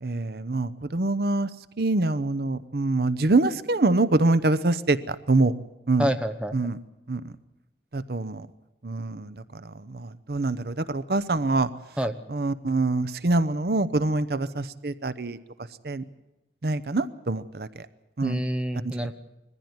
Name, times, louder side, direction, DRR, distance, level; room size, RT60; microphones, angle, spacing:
voice 1, 0.0-1.5 1.8-5.6 5.9-6.1 6.5-6.8 7.1-7.3 7.9-8.5 8.8-11.7 12.3-15.4 15.8-16.0 16.6-17.7 18.2-18.4, right 2 dB, 60° right, 15 dB, 0.8 m, -25 dB
voice 2, 6.0-6.7 12.0-12.2 18.2-19.1, equal, 5° right, 7 dB, 0.9 m, -27 dB
21.0 x 15.0 x 9.5 m, 0.95 s
head